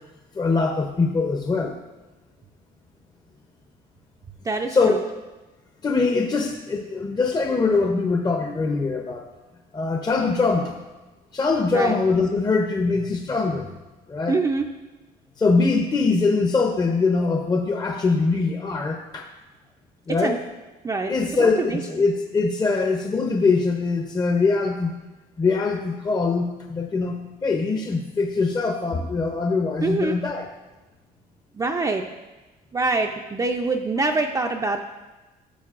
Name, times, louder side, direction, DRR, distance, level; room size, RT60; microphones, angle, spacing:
voice 1, 0.3-1.8 4.7-5.0 5.8-9.3 9.7-10.7 11.3-13.7 14.1-14.4 15.4-19.3 20.1-20.4 21.1-25.0 25.4-30.5, left 4 dB, 25° left, 3 dB, 0.7 m, -22 dB
voice 2, 4.4-5.0 11.7-11.9 14.3-14.7 20.1-20.4 20.8-21.8 29.8-30.2 31.5-32.0 32.7-34.8, right 3 dB, 20° right, 2 dB, 0.5 m, -25 dB
13.5 x 6.5 x 2.5 m, 1.1 s
cardioid pair, 110°, 17 cm